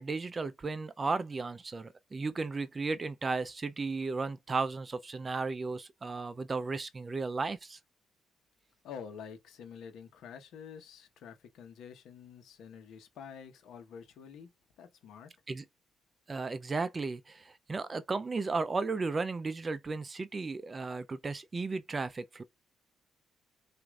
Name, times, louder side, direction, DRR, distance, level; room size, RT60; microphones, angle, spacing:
voice 1, 0.0-7.8 15.5-15.6 16.3-22.4, right 4 dB, 30° right, 0.4 m, -34 dB
voice 2, 8.8-14.5 14.8-15.3, left 7 dB, 80° left, 0.9 m, -48 dB
6.1 x 2.5 x 2.3 m
cardioid pair, 90°, 0 cm